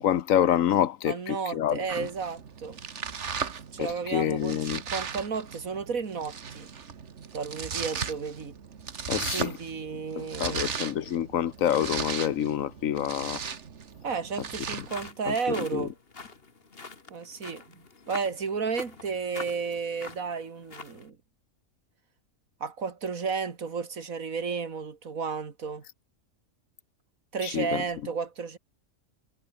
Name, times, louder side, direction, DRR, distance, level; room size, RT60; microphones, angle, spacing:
voice 1, 0.0-2.1 3.8-4.8 9.1-9.5 10.2-13.4 15.3-15.4 15.7-15.9 27.4-27.8, left 10 dB, 80° left, 1.2 m, -27 dB
voice 2, 1.0-2.8 3.7-6.7 7.3-8.5 9.1-10.7 14.0-15.9 17.1-21.2 22.6-25.8 27.3-28.6, right 5 dB, 85° right, 2.4 m, -33 dB
Domestic sounds home sounds, 1.9-15.1, right 6 dB, 60° right, 1.7 m, -37 dB
sound 1, 14.6-21.1, left 4 dB, 45° left, 2.2 m, -45 dB
omnidirectional pair, 1.4 m